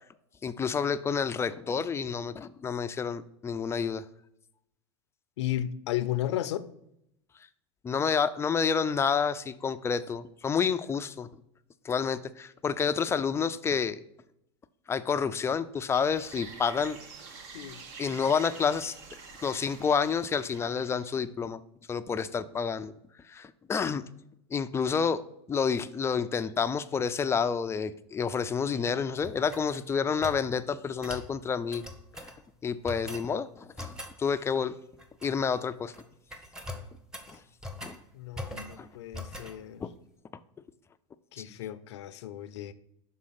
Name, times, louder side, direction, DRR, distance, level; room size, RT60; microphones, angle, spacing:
voice 1, 0.4-4.0 7.8-11.3 11.8-14.0 14.9-17.0 18.0-19.0 19.4-21.6 21.9-22.9 23.3-24.0 24.5-25.2 25.5-31.8 32.6-34.7 35.2-35.9 37.3-37.4 37.8-38.0 38.8-38.9 39.8-39.9 41.4-41.5, left 6 dB, 20° left, 0.4 m, -29 dB
voice 2, 5.4-6.7 17.5-17.8 38.1-39.8 41.3-42.7, left 12 dB, 85° left, 0.5 m, -34 dB
sound 1, 15.9-21.2, right 4 dB, 55° right, 1.2 m, -47 dB
sound 2, 29.2-30.4 31.0-31.3 31.7-32.4 32.8-33.3 33.8-34.2 35.0-35.6 35.8-36.0 36.3-38.0 38.3-38.8 39.1-39.6, left 1 dB, 5° right, 0.9 m, -41 dB
6.2 x 3.8 x 5.8 m
supercardioid pair, 115°, 14 cm